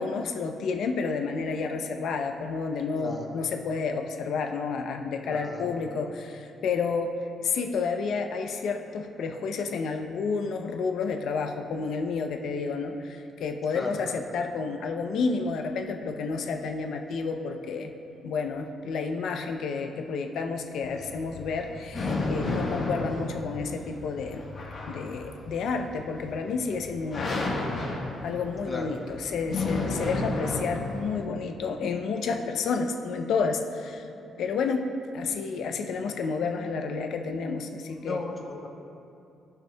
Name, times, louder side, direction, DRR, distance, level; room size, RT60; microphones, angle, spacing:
voice 1, 0.0-7.1 7.4-17.9 18.2-24.4 24.9-27.4 27.8-27.9 28.2-34.1 34.4-38.2, left 4 dB, 75° left, 5 dB, 0.5 m, -30 dB
voice 2, 2.9-3.4 5.2-6.1 13.7-13.9 28.7-28.9 38.0-38.7, left 3 dB, 30° left, 0 dB, 1.2 m, -36 dB
sound 1, 20.8-31.2, left 2 dB, 50° left, 1.3 m, -32 dB
16.0 x 5.8 x 2.2 m, 2.7 s
cardioid pair, 90°, 0 cm